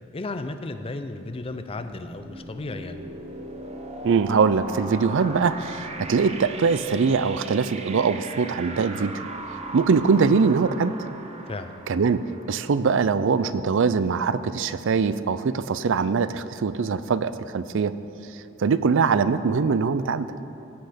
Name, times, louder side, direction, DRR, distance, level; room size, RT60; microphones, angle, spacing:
voice 1, 0.1-3.0 11.5-11.8, left 2 dB, 25° left, 8 dB, 0.5 m, -34 dB
sound 1, 1.7-13.1, right 2 dB, 30° right, 0.7 m, -38 dB
voice 2, 4.0-9.2 9.7-10.9 11.9-18.0 18.6-20.3, right 5 dB, 60° right, 14 dB, 0.4 m, -22 dB
16.5 x 7.9 x 5.1 m, 2.9 s
head